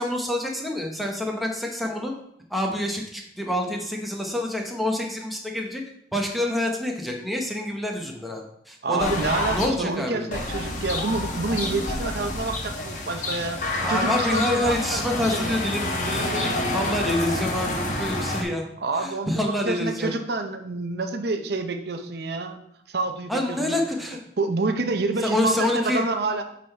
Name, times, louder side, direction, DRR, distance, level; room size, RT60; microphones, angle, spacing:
voice 1, 0.0-2.1 2.5-5.8 6.1-9.1 9.5-10.3 11.2-11.3 13.8-18.6 19.0-20.1 23.3-24.2 25.2-26.0, left 1 dB, ahead, 0 dB, 1.0 m, -27 dB
voice 2, 8.8-15.7 18.8-22.6 22.9-23.8 24.4-26.4, right 3 dB, 65° right, 6 dB, 0.7 m, -28 dB
sound 1, 9.0-9.7 10.3-18.4, left 2 dB, 45° left, 1.2 m, -28 dB
8.3 x 4.0 x 4.5 m, 0.73 s
head